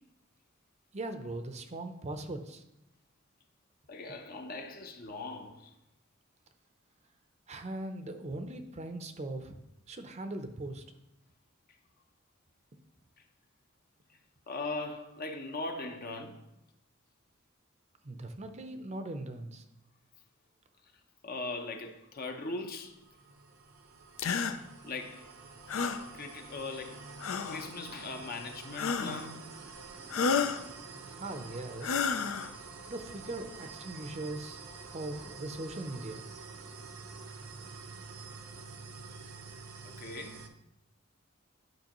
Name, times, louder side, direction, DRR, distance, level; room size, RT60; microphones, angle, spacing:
voice 1, 0.9-2.6 7.5-9.6 9.9-10.8 18.0-19.6 31.1-32.0 32.9-34.6 34.9-36.2, right 2 dB, 35° right, 0.6 m, -40 dB
voice 2, 3.9-5.7 14.5-16.3 21.2-23.0 24.8-25.3 25.7-25.9 26.1-27.1 27.5-29.4 39.8-40.4, left 3 dB, 45° left, 0.7 m, -40 dB
sound 1, 22.5-40.5, right 4 dB, 75° right, 0.8 m, -48 dB
sound 2, 24.2-24.6 25.7-26.0 27.2-27.7 28.8-29.3 30.1-30.6 31.8-32.5, left 5 dB, 80° left, 0.5 m, -30 dB
10.5 x 5.2 x 3.0 m
head